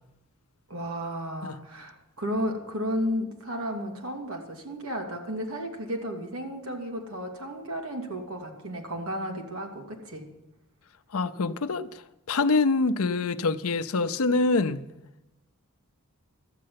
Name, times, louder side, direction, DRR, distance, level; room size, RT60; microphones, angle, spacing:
voice 1, 0.7-10.3, equal, 70° right, 2.5 m, -33 dB
voice 2, 11.1-12.0 12.3-14.9, left 3 dB, 75° left, 0.7 m, -25 dB
13.0 x 7.7 x 9.3 m
head